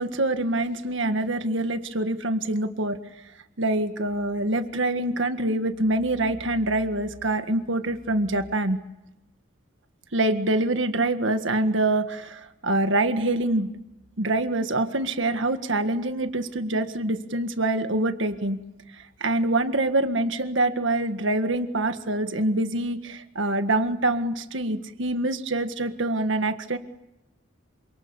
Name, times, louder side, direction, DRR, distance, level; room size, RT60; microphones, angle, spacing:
voice 1, 0.0-3.0 3.6-8.8 10.1-13.7 14.2-18.6 18.9-26.8, right 2 dB, 70° right, 8 dB, 1.8 m, -25 dB
28.0 x 26.0 x 7.2 m, 0.92 s
head